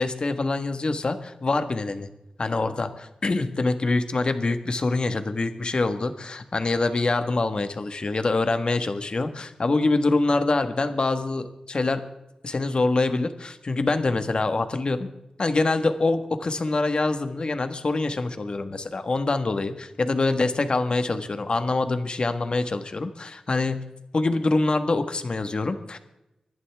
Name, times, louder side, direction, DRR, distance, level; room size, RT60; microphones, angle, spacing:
voice 1, 0.0-2.1 2.4-12.0 12.4-15.1 15.4-23.8 24.1-26.0, left 3 dB, 50° left, 8 dB, 1.5 m, -25 dB
25.5 x 11.0 x 3.6 m, 0.93 s
cardioid pair, 65°, 2 cm